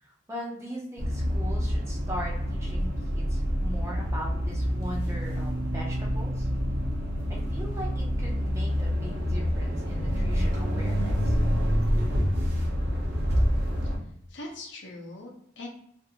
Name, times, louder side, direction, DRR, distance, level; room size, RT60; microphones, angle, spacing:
voice 1, 0.0-6.5 7.3-11.4, equal, 15° right, -3 dB, 0.6 m, -40 dB
sound 1, 1.0-14.0, equal, 55° right, 0.7 m, -27 dB
voice 2, 14.3-15.7, left 2 dB, 65° left, -1 dB, 0.7 m, -41 dB
2.5 x 2.5 x 2.8 m, 0.70 s
head